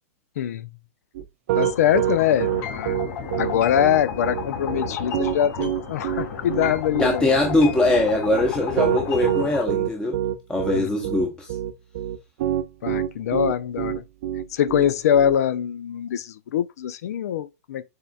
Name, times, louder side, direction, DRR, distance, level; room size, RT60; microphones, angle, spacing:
voice 1, 0.4-0.7 1.5-3.0 3.4-7.3 10.7-10.9 12.8-14.0 14.5-17.8, left 10 dB, 75° left, 0.5 m, -23 dB
Piano, 1.1-15.4, right 11 dB, 55° right, 0.6 m, -26 dB
sound 1, 1.6-9.6, left 6 dB, 40° left, 2.6 m, -33 dB
voice 2, 7.0-10.2 10.5-11.5, left 2 dB, 10° left, 0.8 m, -21 dB
6.4 x 3.6 x 2.3 m
hypercardioid pair, 150°, 8 cm